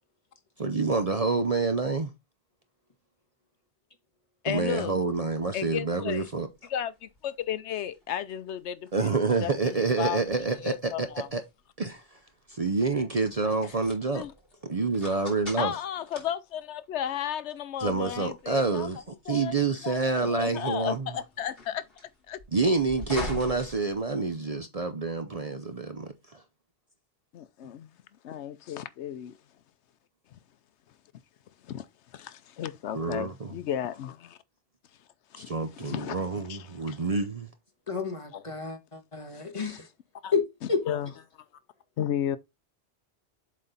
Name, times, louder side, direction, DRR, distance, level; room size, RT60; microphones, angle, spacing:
voice 1, 0.6-2.1 4.5-6.5 8.9-11.4 11.8-12.0 12.5-14.2 14.6-15.7 17.8-21.1 22.5-26.4 32.9-33.5 35.4-37.5, right 3 dB, 40° right, 0.7 m, -28 dB
voice 2, 4.4-5.0 5.5-6.3 6.7-10.2 10.6-11.3 14.1-14.3 15.6-18.9 19.3-19.5 19.8-21.8 22.3-22.4 27.3-27.9 28.2-29.4 31.6-31.9 32.1-34.4 35.3-36.2 36.5-37.1 39.3-39.8 40.2-40.3 40.9-41.1 42.0-42.4, left 10 dB, 80° left, 0.9 m, -34 dB
sound 1, 5.2-24.6, left 1 dB, 55° left, 3.3 m, -46 dB
voice 3, 37.9-39.9 40.3-40.4 40.7-40.8, left 5 dB, 30° left, 1.4 m, -30 dB
7.6 x 4.2 x 4.0 m
omnidirectional pair, 1.2 m